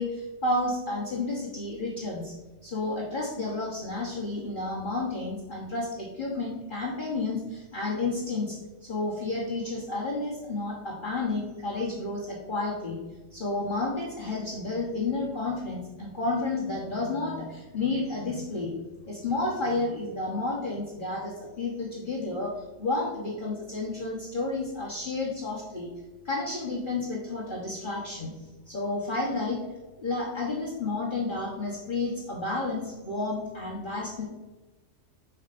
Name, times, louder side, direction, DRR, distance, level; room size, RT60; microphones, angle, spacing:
voice 1, 0.0-2.3 2.6-13.0 13.3-18.7 19.1-25.9 26.2-28.3 28.7-29.6 30.0-34.2, left 2 dB, 45° left, -5 dB, 1.2 m, -31 dB
8.1 x 5.7 x 2.5 m, 1.2 s
omnidirectional pair, 1.3 m